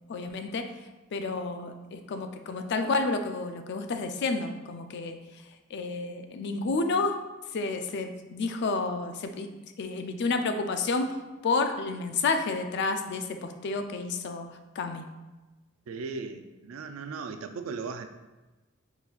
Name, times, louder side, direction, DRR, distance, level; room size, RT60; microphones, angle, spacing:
voice 1, 0.1-0.7 1.1-5.2 5.7-7.2 7.5-9.5 9.8-11.2 11.4-14.5 14.8-15.0, left 3 dB, 55° left, 7 dB, 0.4 m, -30 dB
voice 2, 15.9-18.1, right 4 dB, 85° right, 8 dB, 0.4 m, -37 dB
4.0 x 4.0 x 2.3 m, 1.2 s
head